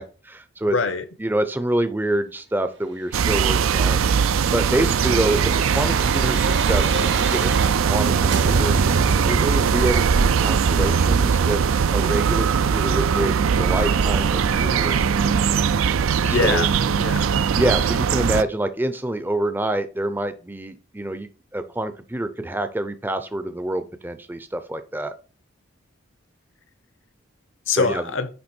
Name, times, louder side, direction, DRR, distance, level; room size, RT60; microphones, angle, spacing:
voice 1, 0.0-0.7 1.2-4.0 4.5-8.8 9.3-11.6 11.9-15.3 16.2-16.6 17.5-25.1 27.7-28.0, right 1 dB, 10° right, 0.5 m, -27 dB
voice 2, 0.7-1.0 16.2-17.4 27.7-28.3, left 4 dB, 65° left, 0.9 m, -24 dB
Quiet suburb atmosphere, 3.1-18.4, right 6 dB, 80° right, 0.4 m, -20 dB
sound 1, 3.5-8.0 8.3-13.1 13.5-13.6, right 3 dB, 55° right, 0.8 m, -31 dB
9.7 x 3.4 x 4.4 m
head